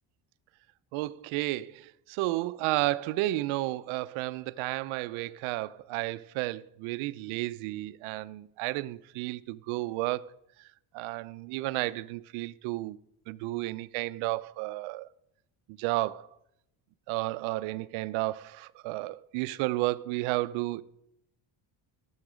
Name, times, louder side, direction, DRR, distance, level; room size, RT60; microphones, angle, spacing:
voice 1, 0.9-10.3 10.9-13.0 13.3-15.1 15.8-16.3 17.1-20.8, right 18 dB, 85° right, 0.7 m, -32 dB
18.0 x 7.3 x 5.0 m
cardioid pair, 95°, 47 cm